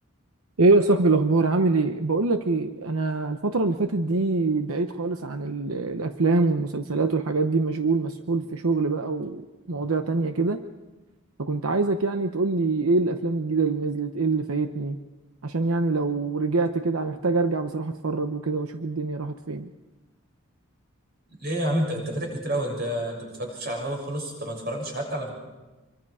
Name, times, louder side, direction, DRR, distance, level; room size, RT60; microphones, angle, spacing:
voice 1, 0.6-10.6 11.4-15.0 15.4-19.7, right 3 dB, 85° right, 7 dB, 0.9 m, -24 dB
voice 2, 21.4-25.3, right 1 dB, 45° right, 1 dB, 6.8 m, -29 dB
26.0 x 24.5 x 4.9 m, 1.2 s
head